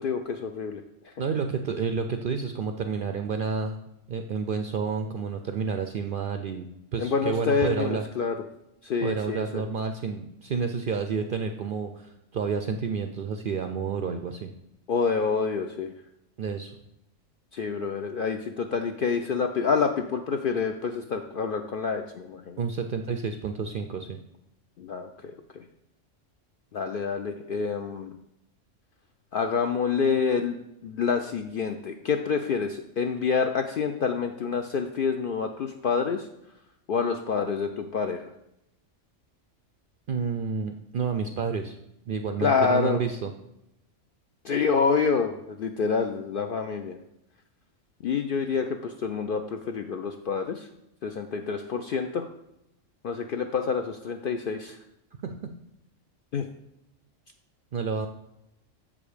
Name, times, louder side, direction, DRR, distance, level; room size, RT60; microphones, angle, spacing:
voice 1, 0.0-1.1 7.0-8.4 8.8-9.6 14.9-15.9 17.5-22.6 24.8-25.6 26.7-28.2 29.3-30.6 30.8-36.3 36.9-38.3 42.4-43.0 44.4-47.0 48.0-50.7 51.0-52.2 53.0-54.8 56.3-56.4, left 5 dB, 65° left, 6 dB, 0.5 m, -27 dB
voice 2, 1.2-3.8 4.1-6.7 6.9-8.0 9.0-14.5 16.4-16.7 22.6-24.2 40.1-41.8 42.1-43.3 55.2-55.5 57.7-58.1, right 5 dB, 65° right, 6 dB, 0.5 m, -30 dB
7.3 x 5.0 x 4.9 m, 0.84 s
omnidirectional pair, 1.3 m